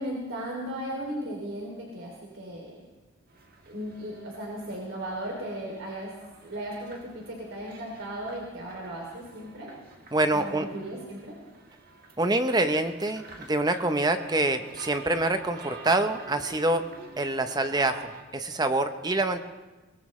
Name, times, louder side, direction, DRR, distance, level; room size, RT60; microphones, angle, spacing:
voice 1, 0.0-2.8 3.7-6.1 6.4-9.7 10.3-11.4, right 1 dB, 80° right, -2 dB, 2.9 m, -36 dB
sound 1, 3.3-18.2, right 4 dB, 50° right, 1.8 m, -49 dB
voice 2, 10.1-10.7 12.2-16.9 17.2-19.4, right 2 dB, 20° right, 8 dB, 0.7 m, -26 dB
23.0 x 18.5 x 3.2 m, 1.2 s
head